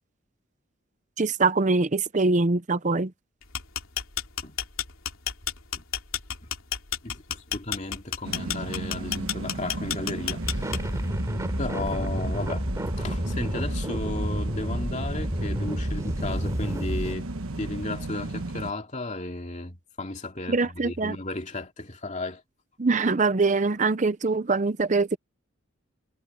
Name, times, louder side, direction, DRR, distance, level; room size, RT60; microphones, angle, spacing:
voice 1, 1.2-3.1 20.5-21.2 22.8-25.2, right 3 dB, 35° right, 0.6 m, -23 dB
sound 1, 3.4-11.1, left 9 dB, 75° left, 3.1 m, -31 dB
voice 2, 7.0-11.1 11.6-17.3 17.6-22.4, left 2 dB, 35° left, 2.5 m, -35 dB
sound 2, 8.2-18.7, right 2 dB, 90° right, 1.2 m, -34 dB
sound 3, 10.4-17.1, equal, 15° right, 3.8 m, -30 dB
head